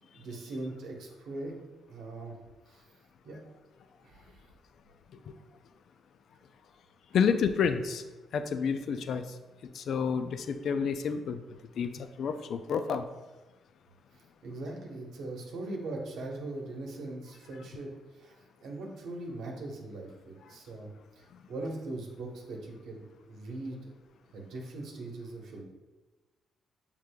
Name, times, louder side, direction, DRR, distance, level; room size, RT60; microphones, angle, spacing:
voice 1, 0.0-1.6 1.9-2.3 2.7-2.8 3.2-3.4 4.0-4.4 14.1-18.4 18.6-20.9 21.2-23.9 24.3-25.6, right 2 dB, 80° right, 0 dB, 0.9 m, -40 dB
voice 2, 7.1-8.0 8.3-9.3 9.7-11.4 11.8-13.1, left 6 dB, 65° left, 9 dB, 0.3 m, -29 dB
6.3 x 3.7 x 2.2 m, 1.2 s
cardioid pair, 90°, 0 cm